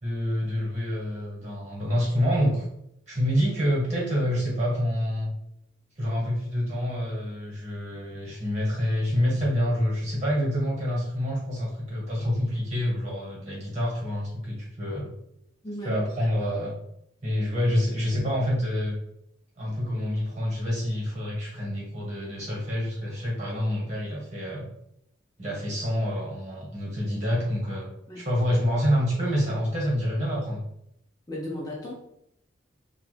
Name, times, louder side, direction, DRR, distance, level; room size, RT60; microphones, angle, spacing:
voice 1, 0.0-2.7 3.1-5.3 6.0-15.1 15.8-16.7 17.2-19.0 19.6-24.6 25.4-27.9 28.1-30.6, equal, 35° right, -4 dB, 1.2 m, -27 dB
voice 2, 15.6-16.0 28.1-28.2 31.3-31.9, left 1 dB, 20° left, -4 dB, 0.5 m, -35 dB
2.9 x 2.3 x 3.2 m, 0.74 s
head